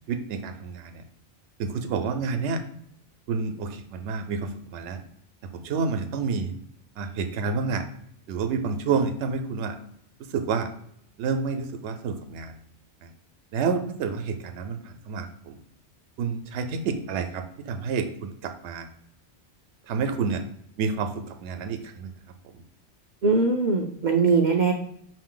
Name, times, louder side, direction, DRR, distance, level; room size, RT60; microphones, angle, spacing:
voice 1, 0.1-1.0 1.6-2.6 3.3-5.0 5.4-6.5 7.0-7.8 8.3-9.8 10.3-10.7 11.2-12.6 13.0-13.1 13.5-15.6 16.2-18.9 19.9-20.4 20.8-22.1, right 5 dB, 75° right, 7 dB, 0.8 m, -29 dB
voice 2, 23.2-24.7, right 4 dB, 60° right, 1 dB, 0.5 m, -21 dB
5.5 x 2.6 x 3.7 m, 0.69 s
omnidirectional pair, 1.2 m